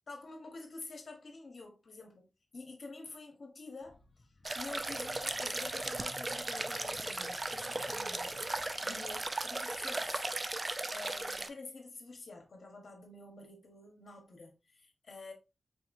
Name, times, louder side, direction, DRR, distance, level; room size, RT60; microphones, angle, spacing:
voice 1, 0.1-4.0 4.5-10.1 10.9-15.3, left 3 dB, 55° left, 1.2 m, -48 dB
sound 1, 3.8-10.6 11.1-11.2, left 2 dB, 40° left, 0.7 m, -59 dB
sound 2, 4.4-11.5, right 2 dB, 25° right, 0.3 m, -37 dB
4.2 x 2.9 x 2.5 m
wide cardioid pair, 115°, 0 cm